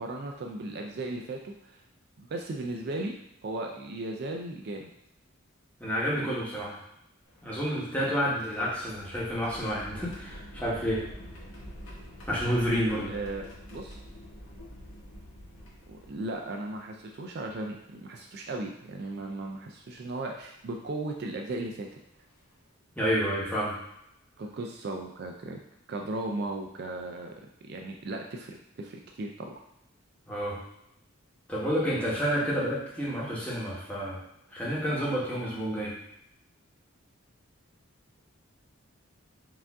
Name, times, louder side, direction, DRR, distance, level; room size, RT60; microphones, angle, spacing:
voice 1, 0.0-1.8 2.2-3.1 3.4-4.9 13.1-14.0 15.9-21.9 24.4-25.6 25.9-27.3 27.7-29.6, right 2 dB, 50° right, 2 dB, 0.4 m, -36 dB
voice 2, 5.8-6.8 7.4-11.0 12.3-13.1 23.0-23.8 30.3-30.6 31.5-34.2 34.5-35.9, equal, 5° left, -7 dB, 1.1 m, -29 dB
sound 1, 7.2-16.5 17.4-17.5 19.0-19.2 20.0-20.2 21.8-21.9 22.3-22.5, equal, 80° left, 1.2 m, -47 dB
4.7 x 2.6 x 3.5 m, 0.81 s
head